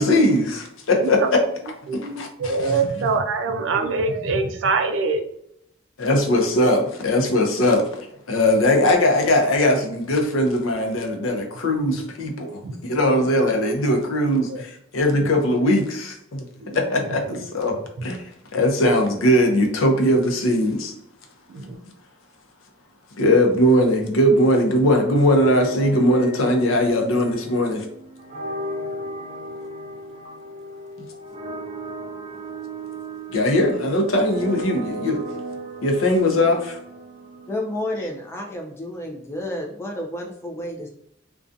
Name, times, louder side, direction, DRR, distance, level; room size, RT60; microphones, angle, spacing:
voice 1, 0.0-1.4 2.0-2.8 6.0-16.5 16.7-18.2 18.5-20.9 23.2-27.8 30.3-30.4 31.0-31.1 33.3-35.2 35.8-36.8, left 1 dB, 85° left, 3 dB, 0.5 m, -20 dB
voice 2, 1.9-5.2 12.6-12.7 14.5-14.6 16.6-16.8 17.3-17.4 21.5-21.8, right 4 dB, 70° right, 6 dB, 0.3 m, -24 dB
sound 1, 25.2-38.1, right 1 dB, 30° right, 0.7 m, -35 dB
voice 3, 37.4-40.9, left 1 dB, 15° left, 0 dB, 0.3 m, -30 dB
2.4 x 2.2 x 2.5 m, 0.75 s
head